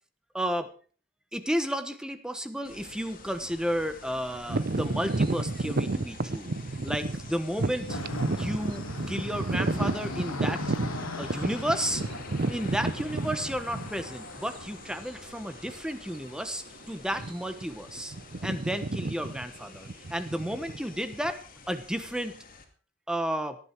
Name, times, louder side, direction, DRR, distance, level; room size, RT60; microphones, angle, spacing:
voice 1, 0.3-0.7 1.3-6.5 6.8-8.0 8.3-10.6 11.2-12.0 12.5-18.1 18.4-21.4 21.7-22.4 23.1-23.6, equal, 5° right, 10 dB, 1.1 m, -32 dB
sound 1, 2.6-22.6, left 4 dB, 40° left, 2.2 m, -48 dB
sound 2, 4.5-14.3 14.9-15.0 15.7-15.9 16.2-16.4 17.1-17.6 17.9-21.3, right 2 dB, 45° right, 0.7 m, -31 dB
sound 3, 7.9-15.9, left 2 dB, 85° left, 1.9 m, -40 dB
17.5 x 11.5 x 4.6 m, 0.41 s
head